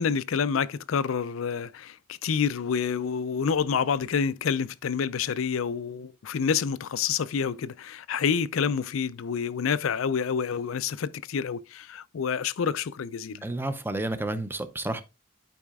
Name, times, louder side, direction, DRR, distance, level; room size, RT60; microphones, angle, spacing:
voice 1, 0.0-13.4, left 6 dB, 75° left, 0.4 m, -28 dB
voice 2, 13.4-15.0, right 2 dB, 10° right, 0.6 m, -30 dB
11.5 x 4.9 x 2.3 m
head